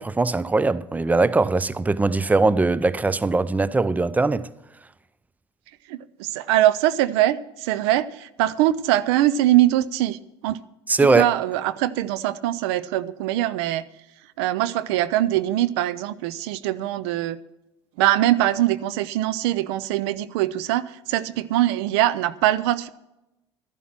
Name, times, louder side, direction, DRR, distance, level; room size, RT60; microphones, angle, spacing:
voice 1, 0.0-4.5 10.9-11.3, right 3 dB, 10° right, 0.5 m, -21 dB
voice 2, 5.9-10.2 10.4-10.6 11.2-13.9 14.4-17.4 18.0-22.9, right 14 dB, 75° right, 0.6 m, -22 dB
12.5 x 11.0 x 6.0 m
hypercardioid pair, 65°, 14 cm